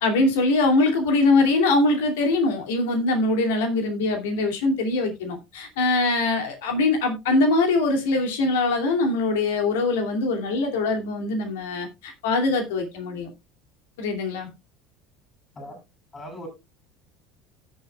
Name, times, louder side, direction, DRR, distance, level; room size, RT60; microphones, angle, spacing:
voice 1, 0.0-13.3 14.0-14.5, left 2 dB, 65° left, 2.6 m, -22 dB
voice 2, 16.1-16.5, left 1 dB, 25° left, 6.3 m, -38 dB
17.0 x 7.1 x 2.3 m
figure-of-eight pair, 70°, 0 cm